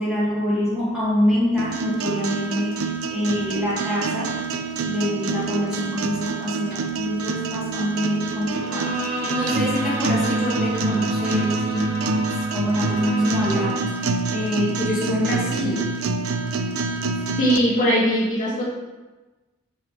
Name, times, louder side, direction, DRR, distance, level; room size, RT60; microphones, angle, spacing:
voice 1, 0.0-4.3 4.8-11.9 12.5-15.8, left 1 dB, 5° right, -10 dB, 2.2 m, -25 dB
sound 1, 1.6-17.6, right 3 dB, 85° right, 0.5 m, -26 dB
Bowed string instrument, 8.5-14.0, right 1 dB, 10° left, 1.9 m, -30 dB
voice 2, 17.4-18.6, equal, 40° left, -9 dB, 2.3 m, -20 dB
8.7 x 4.9 x 3.3 m, 1.2 s
head